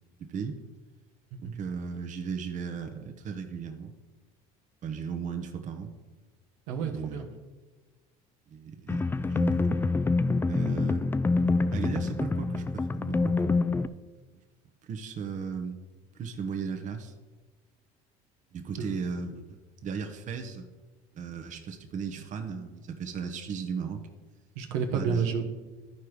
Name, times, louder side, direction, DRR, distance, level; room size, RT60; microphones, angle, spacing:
voice 1, 0.2-0.6 1.4-3.9 4.8-5.9 6.8-7.2 8.5-9.8 10.5-11.1 11.7-13.3 14.9-15.8 16.2-17.1 18.5-19.6 19.8-20.6 21.1-24.0 24.9-25.3, right 6 dB, 45° right, 6 dB, 1.0 m, -36 dB
voice 2, 6.7-7.3 18.8-19.0 24.5-25.4, right 6 dB, 80° right, 4 dB, 1.1 m, -30 dB
sound 1, 8.9-13.9, left 3 dB, 15° left, 0.3 m, -26 dB
12.0 x 4.6 x 4.9 m, 1.3 s
supercardioid pair, 85°, 17 cm